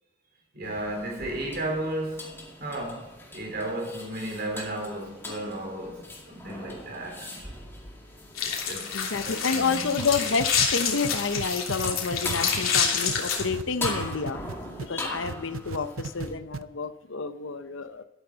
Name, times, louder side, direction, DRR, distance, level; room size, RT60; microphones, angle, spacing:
voice 1, 0.5-7.5 8.4-9.9, right 1 dB, 50° right, 4.0 m, -34 dB
sound 1, 0.6-16.3, left 2 dB, 10° left, 2.2 m, -41 dB
sound 2, 8.4-13.4, left 7 dB, 85° left, 3.2 m, -28 dB
voice 2, 8.9-14.4 14.8-18.0, left 5 dB, 65° left, 0.7 m, -29 dB
sound 3, 10.0-14.9 15.2-16.3 16.5-16.6, right 4 dB, 75° right, 0.6 m, -35 dB
13.0 x 12.5 x 4.0 m
head